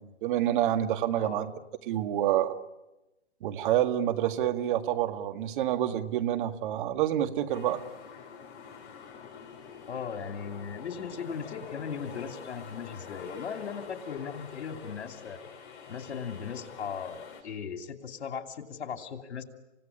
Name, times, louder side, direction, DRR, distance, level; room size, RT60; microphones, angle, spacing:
voice 1, 0.0-1.5 1.8-2.6 3.4-7.8, right 12 dB, 50° right, 8 dB, 1.9 m, -28 dB
voice 2, 1.2-1.5 9.9-15.4 15.9-19.4, left 6 dB, 70° left, 6 dB, 2.9 m, -38 dB
sound 1, 7.5-17.4, left 6 dB, 50° left, 7.5 m, -46 dB
29.0 x 17.0 x 9.9 m, 1.0 s
hypercardioid pair, 125°, 34 cm